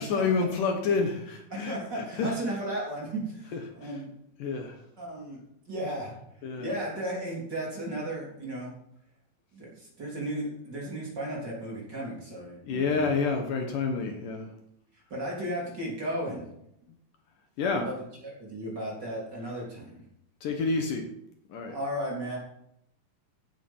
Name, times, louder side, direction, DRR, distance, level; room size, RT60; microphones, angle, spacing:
voice 1, 0.0-2.4 3.5-4.0 4.4-4.8 6.4-6.7 12.6-14.5 17.6-17.9 20.4-21.1 21.5-21.8, left 4 dB, 65° left, 3 dB, 2.7 m, -29 dB
voice 2, 1.5-4.1 5.0-5.4 5.7-6.1 6.6-8.7 9.5-13.1 15.1-16.5 17.6-20.0 21.7-22.4, right 1 dB, 30° right, -4 dB, 4.0 m, -35 dB
16.0 x 7.4 x 5.5 m, 0.77 s
omnidirectional pair, 4.4 m